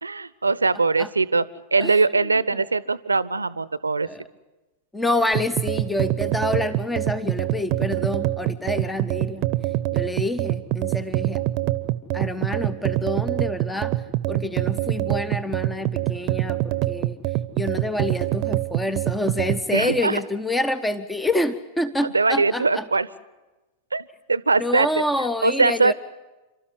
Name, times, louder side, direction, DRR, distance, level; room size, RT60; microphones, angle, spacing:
voice 1, 0.0-1.4 1.7-4.1 19.7-20.2 22.1-23.1 23.9-25.0 25.4-25.9, right 4 dB, 80° right, 19 dB, 0.7 m, -21 dB
voice 2, 4.9-9.5 9.9-11.4 12.1-13.9 14.3-17.2 17.6-22.8 24.6-25.9, left 1 dB, 5° left, 14 dB, 0.7 m, -27 dB
sound 1, 5.3-19.6, right 16 dB, 40° right, 0.7 m, -25 dB
29.0 x 13.0 x 9.6 m, 1.1 s
figure-of-eight pair, 90°, 0 cm